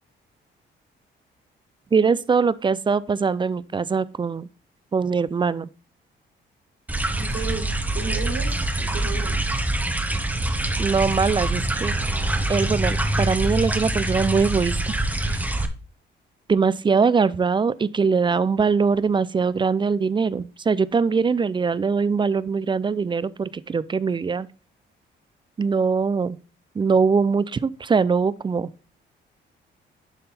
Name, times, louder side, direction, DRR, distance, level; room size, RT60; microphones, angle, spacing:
voice 1, 1.9-4.5 4.9-5.7 10.8-11.9 12.5-14.9 15.2-15.4 16.5-24.5 25.6-26.4 26.8-28.7, right 5 dB, 25° right, 0.4 m, -22 dB
sound 1, 6.9-15.7, right 1 dB, 10° right, 0.9 m, -25 dB
voice 2, 7.2-7.7 7.9-9.6, right 5 dB, 70° right, 3.8 m, -34 dB
10.5 x 3.7 x 4.2 m
cardioid pair, 90°, 20 cm